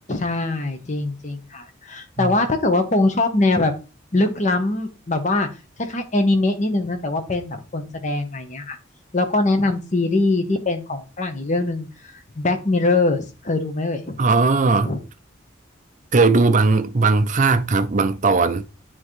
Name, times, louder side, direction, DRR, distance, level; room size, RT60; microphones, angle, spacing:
voice 1, 0.1-3.7 4.1-5.5 5.8-8.8 9.1-14.2 14.8-15.0, left 2 dB, 35° left, 1.0 m, -22 dB
voice 2, 14.2-14.9 16.1-18.6, right 3 dB, 40° right, 0.5 m, -18 dB
9.1 x 3.7 x 3.2 m
head